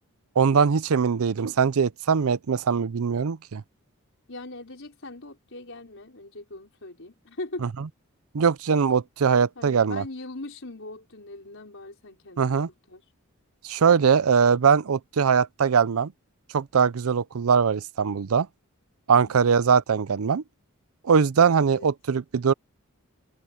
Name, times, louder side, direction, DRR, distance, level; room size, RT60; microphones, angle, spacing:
voice 1, 0.4-3.6 8.3-10.0 12.4-12.7 13.6-16.1 16.5-18.5 19.1-20.4 21.0-22.5, right 6 dB, 70° right, 0.5 m, -21 dB
voice 2, 4.3-7.7 9.6-12.6 12.9-13.0 19.1-19.5 21.7-21.9, left 2 dB, 60° left, 5.1 m, -40 dB
head